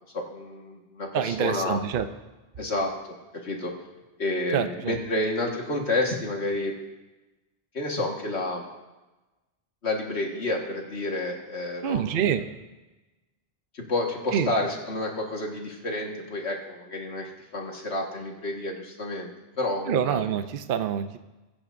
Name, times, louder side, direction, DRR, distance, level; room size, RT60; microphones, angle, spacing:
voice 1, 0.1-1.8 2.6-3.2 3.4-3.7 4.2-6.7 7.7-8.6 9.8-12.0 13.7-19.3 19.6-20.2, left 2 dB, 85° left, 0 dB, 2.0 m, -30 dB
voice 2, 1.1-2.1 4.5-5.0 11.8-12.4 14.3-14.5 19.9-21.2, right 8 dB, 60° right, 9 dB, 0.8 m, -26 dB
21.5 x 8.8 x 2.6 m, 1.1 s
omnidirectional pair, 1.1 m